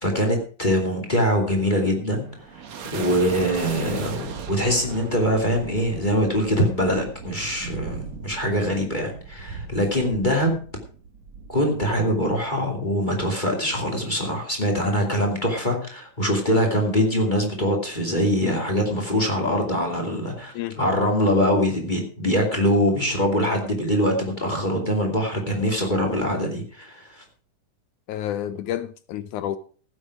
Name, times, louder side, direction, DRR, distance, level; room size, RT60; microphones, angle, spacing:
voice 1, 0.0-2.3 2.9-10.6 11.5-27.2, equal, 15° left, 2.4 m, -23 dB
sound 1, 2.0-12.6, right 5 dB, 60° right, 2.5 m, -38 dB
voice 2, 28.1-29.6, left 11 dB, 75° left, 2.0 m, -30 dB
15.0 x 9.0 x 4.8 m
omnidirectional pair, 3.8 m